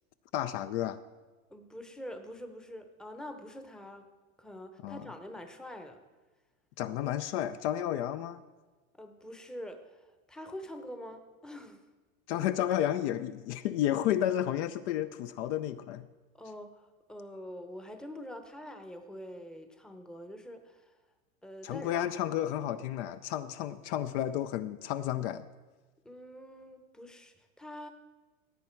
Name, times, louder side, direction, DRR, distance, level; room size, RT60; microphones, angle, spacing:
voice 1, 0.3-1.0 4.8-5.1 6.8-8.4 12.3-16.1 21.6-25.5, left 11 dB, 55° left, 12 dB, 0.6 m, -32 dB
voice 2, 1.5-4.1 4.4-6.0 6.8-6.9 8.9-11.8 16.3-20.9 21.4-22.1 26.0-27.9, equal, ahead, 7 dB, 0.8 m, -45 dB
16.5 x 8.4 x 4.5 m, 1.2 s
supercardioid pair, 135°, 42 cm